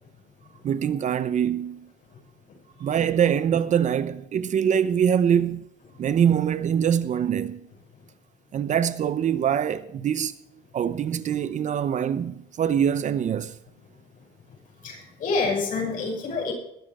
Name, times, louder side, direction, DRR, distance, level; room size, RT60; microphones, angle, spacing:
voice 1, 0.6-1.9 2.8-5.7 6.0-7.7 8.5-10.3 10.7-13.6, right 8 dB, 45° right, 0.8 m, -24 dB
voice 2, 14.8-16.5, left 4 dB, 55° left, 6.3 m, -27 dB
21.0 x 7.5 x 4.9 m
cardioid pair, 110°, 17 cm